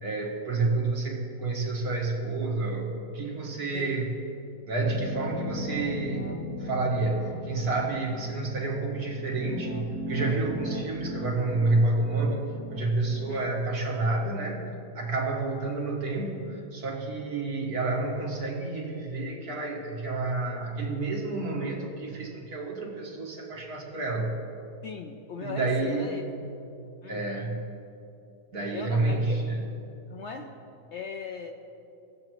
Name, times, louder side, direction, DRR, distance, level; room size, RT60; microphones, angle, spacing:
voice 1, 0.0-4.2 4.7-6.3 6.6-14.6 15.0-24.4 25.4-26.2 27.1-27.7 28.5-29.6, right 3 dB, 70° right, -2 dB, 2.1 m, -29 dB
sound 1, 4.8-13.7, left 1 dB, 10° left, 1.0 m, -38 dB
voice 2, 24.8-26.2 27.0-27.5 28.7-29.4 30.1-30.5 30.9-31.5, left 5 dB, 65° left, 3 dB, 0.7 m, -39 dB
19.5 x 7.8 x 3.0 m, 2.7 s
omnidirectional pair, 1.7 m